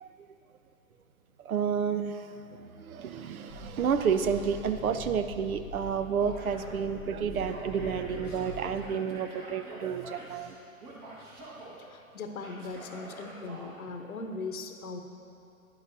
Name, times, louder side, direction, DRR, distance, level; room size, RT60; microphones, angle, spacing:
voice 1, 1.4-10.6, right 7 dB, 85° right, 10 dB, 0.6 m, -30 dB
sound 1, 3.5-8.9, left 2 dB, 25° left, 0.4 m, -44 dB
Male speech man speaking / Yell, 6.2-6.8 7.2-10.5 10.8-11.8 12.4-13.7, right 1 dB, 30° right, 1.4 m, -46 dB
voice 2, 11.8-15.0, left 3 dB, 85° left, 6 dB, 0.8 m, -39 dB
10.5 x 7.7 x 2.6 m, 2.8 s
hypercardioid pair, 125°, 42 cm